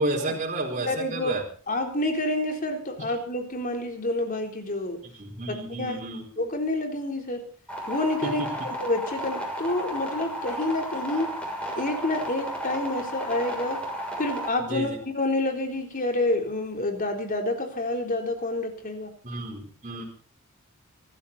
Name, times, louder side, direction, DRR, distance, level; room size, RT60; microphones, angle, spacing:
voice 1, 0.0-1.4 5.2-6.2 8.2-8.5 14.7-15.0 19.2-20.0, right 2 dB, 35° right, -2 dB, 4.4 m, -31 dB
voice 2, 0.8-1.3 1.7-5.0 5.5-6.0 6.4-7.4 7.9-11.3 11.8-13.8 14.2-19.1, left 2 dB, 40° left, 4 dB, 3.8 m, -28 dB
sound 1, 7.7-14.5, equal, 5° left, 6.8 m, -33 dB
24.5 x 13.5 x 4.2 m, 0.42 s
head